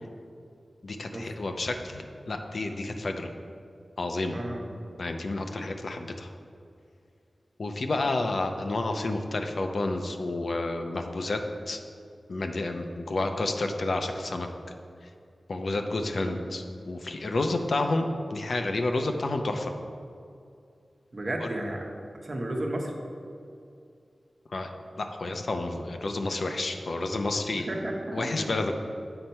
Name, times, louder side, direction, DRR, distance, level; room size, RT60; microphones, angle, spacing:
voice 1, 0.8-3.3 4.0-4.4 5.0-6.3 7.6-11.4 11.7-11.8 12.3-14.5 15.5-19.7 21.4-21.5 24.5-24.7 25.0-27.7 28.1-28.7, left 2 dB, 70° left, 5 dB, 0.6 m, -30 dB
voice 2, 4.3-4.7 16.1-16.3 21.1-21.8 22.2-23.0 27.7-28.3, right 1 dB, 45° right, 1 dB, 1.0 m, -33 dB
7.8 x 4.4 x 5.4 m, 2.4 s
wide cardioid pair, 70°, 0 cm